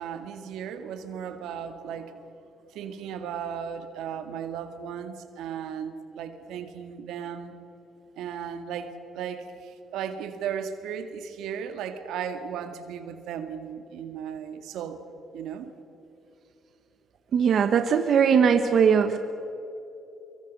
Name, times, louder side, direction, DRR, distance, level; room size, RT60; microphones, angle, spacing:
voice 1, 0.0-2.2 2.7-7.5 8.2-15.0 15.3-15.7, right 8 dB, 90° right, 8 dB, 1.9 m, -36 dB
voice 2, 17.3-19.2, right 7 dB, 60° right, 7 dB, 1.2 m, -20 dB
24.5 x 24.0 x 5.4 m, 3.0 s
cardioid pair, 90°, 0 cm